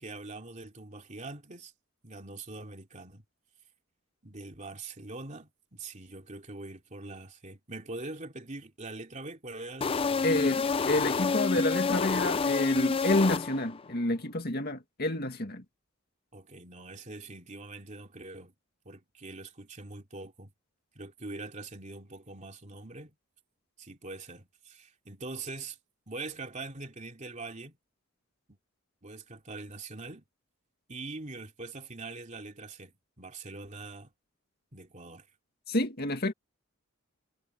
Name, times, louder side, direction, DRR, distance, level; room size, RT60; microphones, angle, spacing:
voice 1, 0.0-1.7 2.0-3.2 4.2-10.6 16.3-18.5 18.8-20.5 20.9-23.1 23.8-25.8 26.1-27.8 28.5-28.6 29.0-30.2 30.9-34.1 34.7-35.3, right 3 dB, 35° right, 3.0 m, -43 dB
sound 1, 9.8-13.9, left 4 dB, 25° left, 0.4 m, -28 dB
voice 2, 10.2-15.6 35.7-36.3, left 1 dB, 50° left, 2.2 m, -29 dB
head